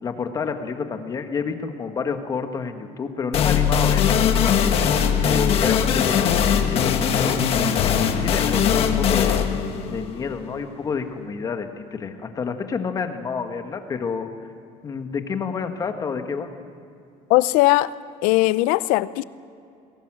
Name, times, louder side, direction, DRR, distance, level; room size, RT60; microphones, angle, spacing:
voice 1, 0.0-4.6 5.2-9.4 9.9-14.3 14.8-16.5, left 5 dB, 25° left, 6 dB, 1.6 m, -29 dB
sound 1, 3.3-10.8, left 8 dB, 45° left, 1.5 m, -20 dB
voice 2, 17.3-17.9 18.2-19.2, left 18 dB, 90° left, 17 dB, 0.7 m, -18 dB
22.0 x 17.5 x 7.6 m, 2.5 s
cardioid pair, 160°, 14 cm